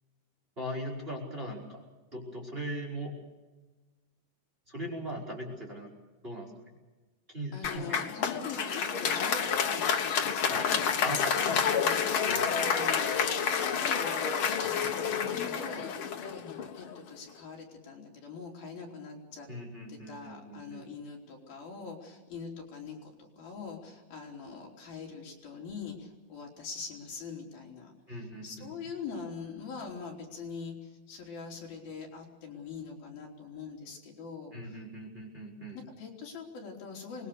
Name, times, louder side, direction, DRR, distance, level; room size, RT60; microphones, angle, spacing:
voice 1, 0.6-1.8 2.1-3.2 4.7-5.9 6.2-6.5 7.3-8.2 10.5-11.3 12.2-12.4 19.5-20.9 28.1-28.7 34.5-35.8, equal, 15° right, -1 dB, 5.2 m, -39 dB
voice 2, 7.5-13.7 14.0-14.4 15.0-19.5 19.9-34.8 36.0-37.3, left 5 dB, 65° left, 0 dB, 5.3 m, -43 dB
Applause, 7.6-17.0, left 7 dB, 85° left, 1.1 m, -29 dB
25.5 x 21.0 x 6.8 m, 1.2 s
omnidirectional pair, 4.5 m